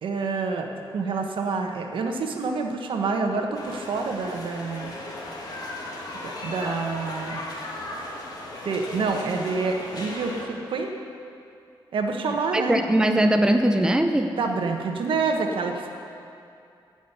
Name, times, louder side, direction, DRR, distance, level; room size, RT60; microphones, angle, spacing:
voice 1, 0.0-4.9 6.2-7.4 8.6-10.9 11.9-12.8 14.4-15.9, right 4 dB, 75° right, 3 dB, 1.3 m, -27 dB
sound 1, 3.5-10.5, left 1 dB, 50° left, 2.6 m, -36 dB
voice 2, 12.5-14.4, right 1 dB, 10° right, 5 dB, 0.7 m, -21 dB
15.5 x 6.3 x 8.4 m, 2.5 s
cardioid pair, 100°, 9 cm